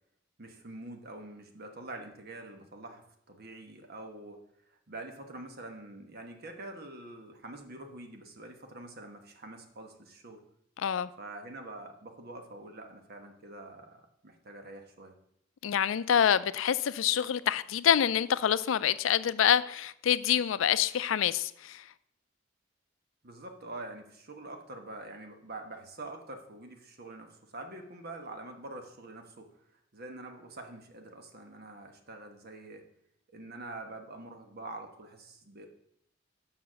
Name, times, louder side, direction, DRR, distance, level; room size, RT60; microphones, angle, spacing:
voice 1, 0.4-3.0 3.3-10.4 11.2-15.1 23.2-29.5 29.9-32.8 33.3-35.7, right 2 dB, 55° right, 1.2 m, -45 dB
voice 2, 10.8-11.1 15.6-21.9, left 9 dB, 80° left, 0.4 m, -26 dB
6.9 x 5.7 x 6.3 m
head